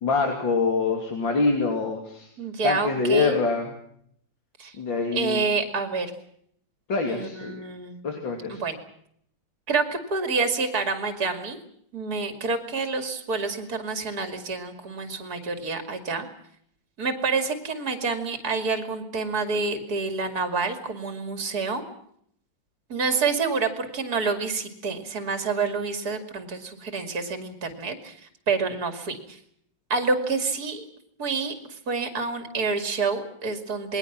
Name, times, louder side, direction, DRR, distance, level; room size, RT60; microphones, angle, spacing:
voice 1, 0.0-2.3 2.6-3.7 4.8-5.4 6.9-7.6 8.0-8.6, left 4 dB, 90° left, 3 dB, 3.5 m, -25 dB
voice 2, 2.4-3.4 4.6-4.8 5.1-6.1 7.1-8.0 8.5-8.8 9.7-11.6 11.9-16.3 17.0-21.8 22.9-29.4 29.9-30.9 31.2-34.0, right 4 dB, 55° right, 8 dB, 3.1 m, -28 dB
28.0 x 21.0 x 6.1 m, 0.68 s
omnidirectional pair, 2.0 m